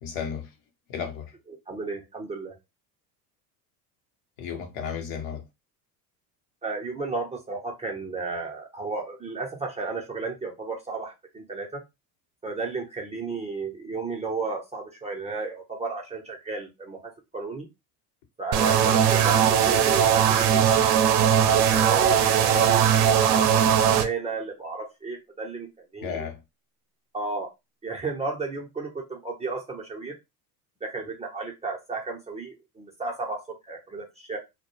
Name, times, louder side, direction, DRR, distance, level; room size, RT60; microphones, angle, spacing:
voice 1, 0.0-0.5 0.9-1.4 4.4-5.4 26.0-26.4, left 7 dB, 60° left, 0.9 m, -33 dB
voice 2, 1.7-2.6 6.6-11.8 12.4-17.7 18.4-20.8 21.5-25.7 25.9-26.2 27.1-27.5 27.8-30.2 30.8-34.4, right 3 dB, 15° right, 0.6 m, -33 dB
sound 1, 18.5-24.0, right 9 dB, 55° right, 0.6 m, -20 dB
2.2 x 2.2 x 3.0 m
hypercardioid pair, 80°, 49 cm